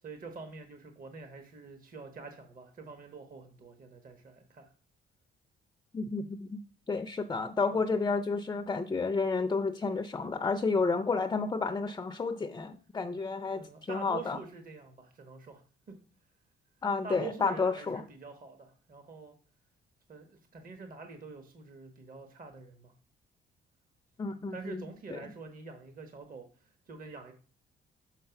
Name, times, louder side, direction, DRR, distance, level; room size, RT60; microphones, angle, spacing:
voice 1, 0.0-4.7 7.7-7.9 13.6-16.0 17.0-19.4 20.1-22.9 24.5-27.3, right 4 dB, 45° right, 5 dB, 1.2 m, -46 dB
voice 2, 5.9-6.6 6.9-14.4 16.8-18.0 24.2-24.8 25.1-25.2, left 4 dB, 20° left, 9 dB, 0.5 m, -31 dB
6.6 x 3.7 x 5.8 m, 0.41 s
cardioid pair, 90°, 20 cm